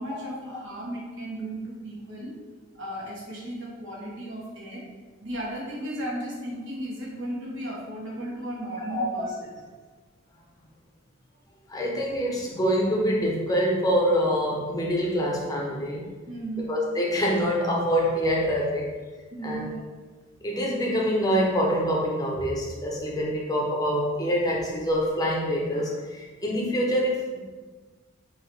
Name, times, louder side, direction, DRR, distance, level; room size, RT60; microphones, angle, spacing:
voice 1, 0.0-2.3 2.7-4.8 5.2-9.5 16.3-16.7 19.3-19.8, right 1 dB, 65° right, -5 dB, 1.4 m, -35 dB
voice 2, 8.8-9.2 11.7-16.1 16.7-18.9 19.4-19.8 20.4-27.4, equal, 20° left, -3 dB, 0.7 m, -25 dB
3.7 x 2.9 x 4.6 m, 1.4 s
head